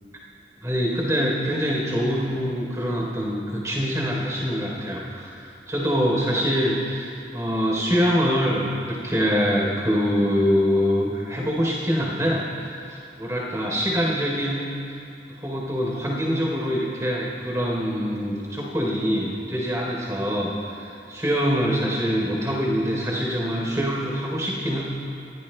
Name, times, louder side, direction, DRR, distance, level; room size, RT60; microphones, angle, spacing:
voice 1, 0.6-14.6 15.3-24.8, equal, 20° right, -3 dB, 3.5 m, -24 dB
28.0 x 16.5 x 2.2 m, 2.7 s
head